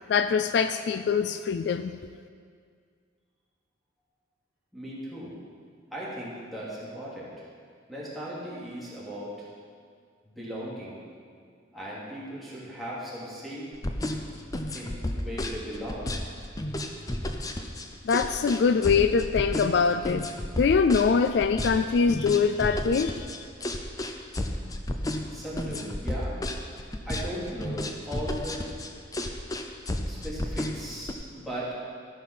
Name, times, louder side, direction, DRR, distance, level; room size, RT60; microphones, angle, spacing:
voice 1, 0.1-2.0 18.0-20.3 20.6-23.3, left 5 dB, 60° left, 10 dB, 0.3 m, -23 dB
voice 2, 4.7-5.3 5.9-7.3 7.9-9.5 10.3-11.0 11.7-13.6 14.7-16.1 25.3-26.3 27.1-28.6 30.1-31.7, equal, ahead, -8 dB, 2.6 m, -37 dB
sound 1, 13.7-31.1, left 1 dB, 20° left, 0.6 m, -32 dB
13.5 x 5.6 x 6.0 m, 2.1 s
head